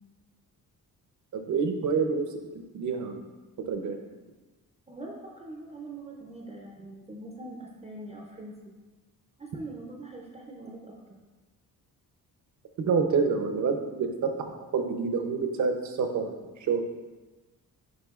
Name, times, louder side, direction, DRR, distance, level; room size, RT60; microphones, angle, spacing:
voice 1, 1.3-2.2 2.7-3.3 3.7-4.0 12.9-14.3 14.7-16.9, right 5 dB, 50° right, 5 dB, 0.7 m, -27 dB
voice 2, 4.9-8.7 9.4-11.0, right 2 dB, 20° right, -1 dB, 0.5 m, -42 dB
10.5 x 4.7 x 2.4 m, 1.2 s
wide cardioid pair, 170°, 36 cm